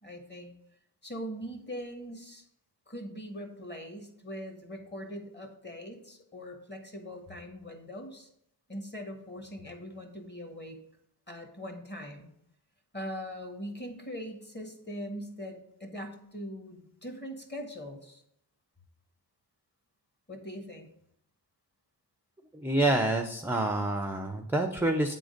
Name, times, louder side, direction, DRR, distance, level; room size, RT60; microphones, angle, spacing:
voice 1, 0.0-0.5 1.0-2.4 2.9-8.3 8.7-10.8 11.3-12.3 12.9-18.2 20.3-20.9, equal, 25° left, 4 dB, 1.5 m, -41 dB
voice 2, 22.6-25.1, right 1 dB, 5° right, 5 dB, 0.5 m, -27 dB
8.9 x 3.8 x 5.1 m, 0.73 s
wide cardioid pair, 85°, 45 cm